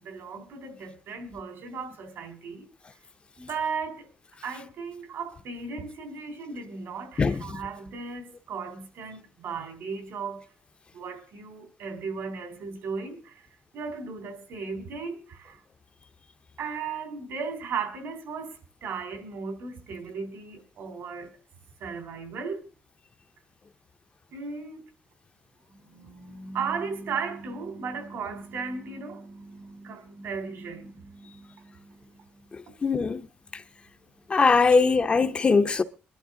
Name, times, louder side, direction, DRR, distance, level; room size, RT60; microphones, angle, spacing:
voice 1, 0.0-2.7 3.4-4.1 4.4-10.4 10.9-13.4 13.7-15.6 16.6-21.3 21.8-22.7 24.3-24.8 25.7-32.8 34.7-34.8, right 5 dB, 70° right, 3.6 m, -36 dB
voice 2, 32.8-33.2 34.3-35.8, left 4 dB, 25° left, 0.6 m, -21 dB
21.5 x 11.5 x 3.8 m
cardioid pair, 155°, 4 cm